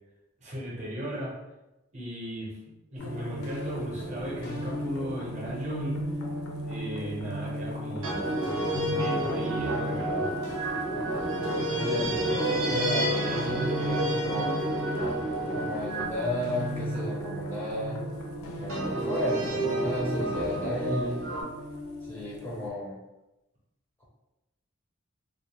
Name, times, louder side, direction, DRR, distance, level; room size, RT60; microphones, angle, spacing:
voice 1, 0.4-1.3 1.9-6.0 6.6-10.4, equal, 35° right, -5 dB, 0.7 m, -36 dB
sound 1, 3.0-22.7, right 1 dB, 90° left, 0.5 m, -36 dB
sound 2, 6.2-6.7 8.0-17.7 18.7-21.4, right 1 dB, 75° right, 0.7 m, -30 dB
voice 2, 11.7-14.6 15.5-18.0 18.6-21.2 22.1-23.0, left 1 dB, 10° left, -5 dB, 0.4 m, -34 dB
2.3 x 2.1 x 2.9 m, 0.97 s
head